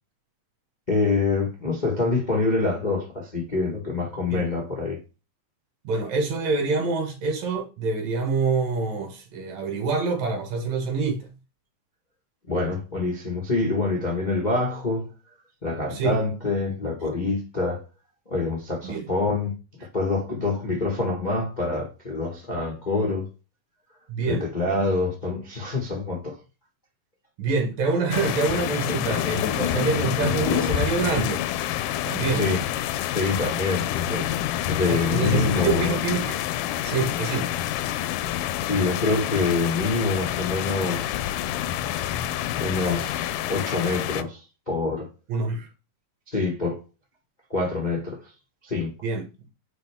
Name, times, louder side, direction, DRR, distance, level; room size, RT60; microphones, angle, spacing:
voice 1, 0.9-5.0 12.5-15.1 15.6-17.8 18.3-19.5 19.8-23.3 24.3-26.4 32.3-32.6 33.1-33.9 34.7-36.0 38.7-41.2 42.6-45.1 46.3-46.8 47.5-48.2 48.6-48.9, left 3 dB, 65° left, 0.4 m, -26 dB
voice 2, 5.8-11.3 15.9-16.2 18.8-19.1 24.1-24.4 27.4-31.4 32.1-32.4 34.1-34.3 34.9-36.4 36.8-37.5 45.3-45.7 49.0-49.5, right 4 dB, 60° right, 2.6 m, -26 dB
sound 1, 28.1-44.2, left 11 dB, 80° left, 2.0 m, -27 dB
9.2 x 4.1 x 3.5 m
omnidirectional pair, 3.9 m